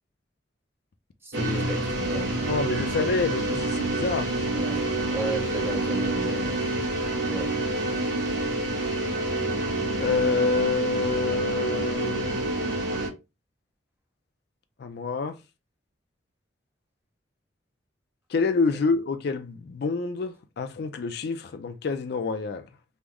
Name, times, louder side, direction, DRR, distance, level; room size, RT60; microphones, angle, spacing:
voice 1, 1.2-2.4 4.5-4.8 5.1-6.8 7.3-7.5, right 1 dB, 15° right, 0.8 m, -35 dB
sound 1, 1.3-13.1, right 2 dB, 90° right, 1.1 m, -27 dB
voice 2, 2.5-4.3 10.0-12.4 14.8-15.4 18.3-22.7, left 4 dB, 60° left, 0.4 m, -27 dB
3.1 x 2.0 x 3.6 m
head